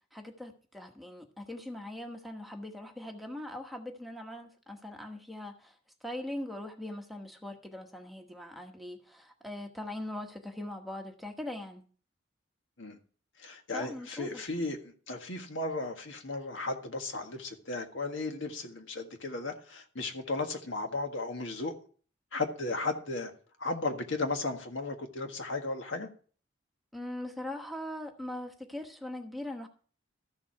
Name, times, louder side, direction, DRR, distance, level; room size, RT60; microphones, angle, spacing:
voice 1, 0.1-5.8 6.0-11.8 13.7-14.5 26.9-29.7, left 1 dB, ahead, 1.1 m, -41 dB
voice 2, 13.4-14.8 15.1-21.7 22.3-23.3 23.6-26.1, left 3 dB, 70° left, 1.7 m, -35 dB
14.0 x 7.3 x 5.7 m
head